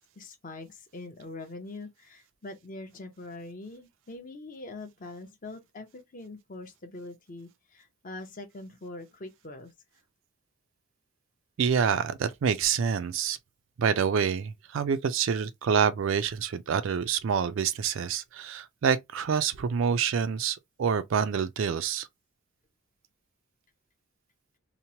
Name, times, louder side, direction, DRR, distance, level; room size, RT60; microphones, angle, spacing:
voice 1, 0.2-9.7, left 2 dB, 35° left, 0.6 m, -43 dB
voice 2, 11.6-13.4 13.8-22.1, right 7 dB, 55° right, 0.3 m, -27 dB
2.9 x 2.0 x 2.7 m
head